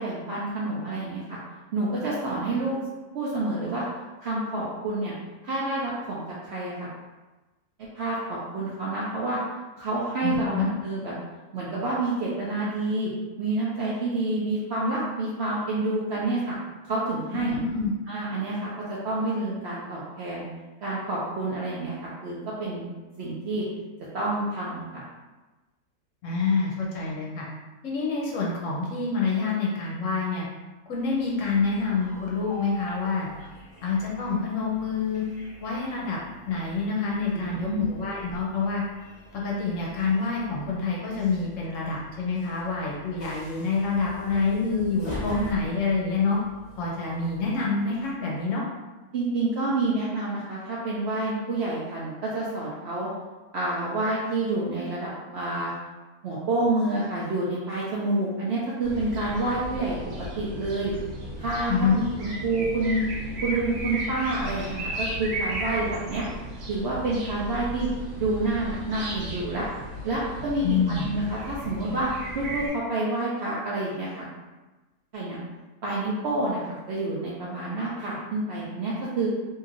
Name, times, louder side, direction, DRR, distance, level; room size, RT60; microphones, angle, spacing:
voice 1, 0.0-1.4 1.7-2.8 3.1-3.8 4.2-5.1 5.4-6.9 7.8-9.4 9.8-11.1 11.5-13.1 13.4-16.6 16.8-17.6 18.1-18.7 19.0-20.4 20.8-22.8 23.2-23.6 24.1-25.0 37.3-37.9 44.1-44.5 45.1-45.5 49.1-53.1 53.5-55.7 56.2-59.9 60.4-60.9 61.4-61.7 62.2-63.0 63.4-66.3 66.7-67.9 68.2-69.7 70.0-72.1 72.3-74.3 75.1-75.4 75.8-79.3, right 2 dB, 65° right, -6 dB, 0.6 m, -28 dB
voice 2, 10.2-10.7 17.3-17.9 26.2-27.4 27.8-30.5 30.9-33.3 33.8-35.2 35.6-36.2 36.5-38.8 39.3-46.4 46.8-48.6 61.7-62.0 70.6-71.0, left 4 dB, 65° left, -3 dB, 0.9 m, -27 dB
Train, 31.0-48.3, left 1 dB, 30° left, 0.7 m, -44 dB
sound 1, 58.8-72.7, right 1 dB, 90° right, 1.3 m, -35 dB
3.0 x 2.7 x 2.5 m, 1.2 s
omnidirectional pair, 1.6 m